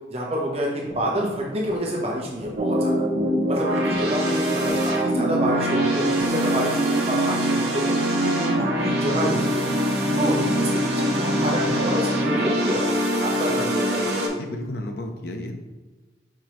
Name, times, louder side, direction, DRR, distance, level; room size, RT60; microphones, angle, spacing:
voice 1, 0.1-3.0 3.5-7.9 8.2-9.7 10.2-14.2, right 1 dB, 35° right, -3 dB, 0.8 m, -28 dB
sound 1, 0.9-6.9, left 1 dB, 25° left, 0.8 m, -40 dB
sound 2, 2.6-14.3, equal, 70° right, 0.8 m, -23 dB
voice 2, 14.4-15.6, left 1 dB, 60° left, 4 dB, 0.6 m, -32 dB
4.6 x 3.7 x 3.0 m, 1.2 s
head